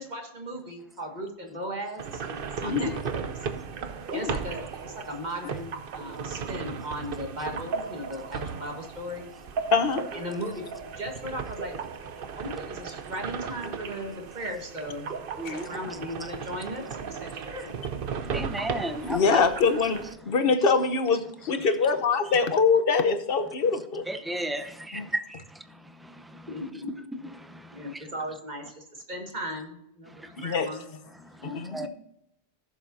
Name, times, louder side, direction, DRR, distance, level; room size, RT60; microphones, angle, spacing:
voice 1, 0.0-3.3 4.1-9.3 10.1-11.8 12.4-15.1 15.4-17.8 26.5-26.9 27.7-30.8, equal, 40° right, 1.9 m, -37 dB
sound 1, 2.0-20.1, right 6 dB, 60° right, 0.8 m, -36 dB
voice 2, 9.7-10.1 15.4-15.6 19.0-24.0 24.9-25.1 30.4-30.7 31.4-31.9, left 5 dB, 60° left, 1.1 m, -24 dB
voice 3, 18.3-19.4 24.1-24.6 31.7-31.9, right 1 dB, ahead, 0.4 m, -31 dB
15.5 x 7.2 x 2.7 m
omnidirectional pair, 1.1 m